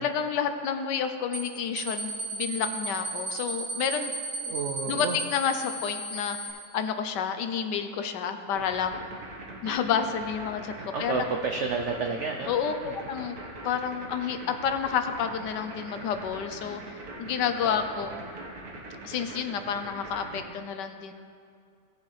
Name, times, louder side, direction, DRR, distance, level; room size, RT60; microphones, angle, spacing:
voice 1, 0.0-4.1 4.9-6.4 6.7-9.0 9.6-10.7 11.0-11.2 12.5-13.4 13.6-16.8 17.2-18.1 19.0-21.1, left 7 dB, 75° left, 8 dB, 1.2 m, -29 dB
sound 1, 1.3-1.5 1.8-6.5, right 2 dB, 40° right, 1.6 m, -34 dB
voice 2, 4.4-5.2 10.8-12.5 12.8-13.0 17.6-18.2, right 4 dB, 75° right, 3 dB, 0.6 m, -31 dB
sound 2, 8.6-20.4, right 2 dB, 55° right, 1.9 m, -42 dB
18.0 x 7.1 x 3.3 m, 2.4 s
omnidirectional pair, 1.9 m